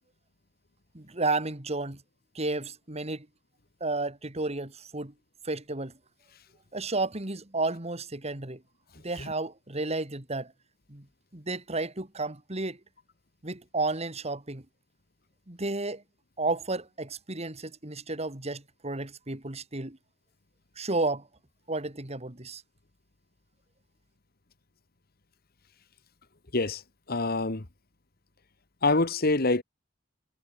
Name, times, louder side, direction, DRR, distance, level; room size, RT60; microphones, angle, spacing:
voice 1, 0.9-2.0 2.3-3.3 3.8-5.1 5.4-5.9 6.7-8.6 9.0-10.5 10.9-11.1 11.3-12.8 13.4-14.6 15.5-16.0 16.4-20.0 20.8-21.3 21.7-22.6, right 3 dB, 35° right, 2.5 m, -32 dB
voice 2, 27.1-27.7 28.8-29.6, left 3 dB, 55° left, 1.6 m, -25 dB
head